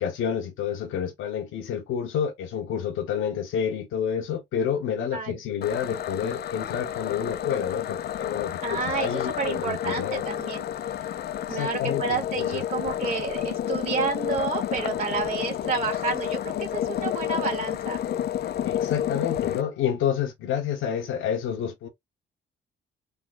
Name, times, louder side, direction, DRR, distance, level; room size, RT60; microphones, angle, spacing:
voice 1, 0.0-10.2 11.5-12.2 12.5-12.6 18.6-21.9, left 8 dB, 90° left, 1.2 m, -29 dB
sound 1, 5.6-19.6, left 10 dB, 55° left, 0.5 m, -30 dB
voice 2, 8.6-10.6 11.5-18.0, right 4 dB, 35° right, 1.5 m, -30 dB
3.9 x 2.3 x 4.2 m
cardioid pair, 90°, 20 cm